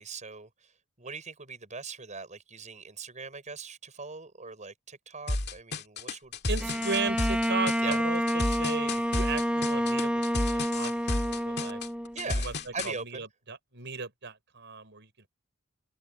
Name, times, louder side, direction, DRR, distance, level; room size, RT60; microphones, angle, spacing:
voice 1, 0.0-6.4 6.7-6.9 7.8-8.0 11.0-11.1 12.1-13.2, right 4 dB, 35° right, 6.3 m, -41 dB
sound 1, 5.3-12.9, left 2 dB, 50° left, 2.2 m, -32 dB
voice 2, 6.5-10.2 10.5-11.8 12.3-12.5 12.8-15.1, right 4 dB, 55° right, 6.6 m, -36 dB
Bowed string instrument, 6.6-12.4, equal, 5° right, 1.0 m, -29 dB
head